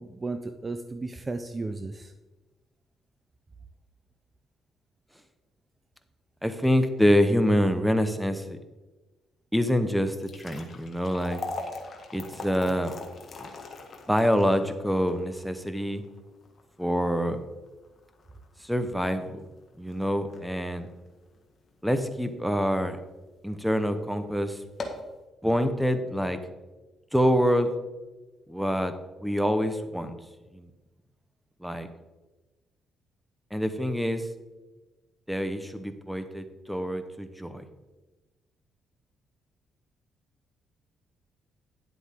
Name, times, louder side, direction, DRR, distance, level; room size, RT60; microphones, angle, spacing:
voice 1, 0.0-2.1, right 3 dB, 25° right, 8 dB, 0.6 m, -34 dB
voice 2, 6.4-8.6 9.5-11.4 12.1-12.9 13.4-13.5 14.1-16.0 16.8-17.4 18.6-19.5 19.8-20.9 21.8-23.0 23.4-24.6 25.4-26.4 27.1-27.7 28.5-28.9 29.2-30.1 30.5-30.7 31.6-31.9 33.5-34.2 35.3-37.6, equal, ahead, 9 dB, 1.0 m, -26 dB
sound 1, 10.0-22.3 22.7-22.8 23.6-23.7 24.1-24.2 24.6-25.1, left 3 dB, 45° left, 1.7 m, -42 dB
11.0 x 7.9 x 3.8 m, 1.1 s
cardioid pair, 90°, 0 cm